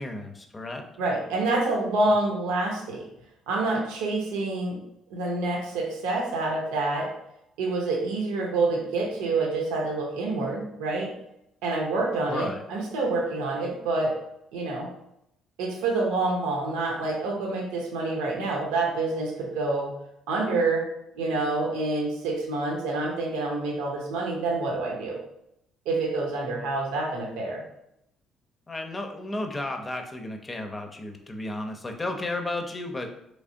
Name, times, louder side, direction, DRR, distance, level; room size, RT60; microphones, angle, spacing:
voice 1, 0.0-0.9 12.3-12.6 28.7-33.1, left 2 dB, 25° left, 4 dB, 0.7 m, -33 dB
voice 2, 1.0-3.0 3.5-4.8 5.1-7.1 7.6-11.1 11.6-14.1 14.5-14.9 15.6-19.9 20.3-20.9 21.1-25.2 25.9-27.6, right 3 dB, 80° right, -1 dB, 0.8 m, -27 dB
3.4 x 3.2 x 2.6 m, 0.79 s
hypercardioid pair, 55°, 0 cm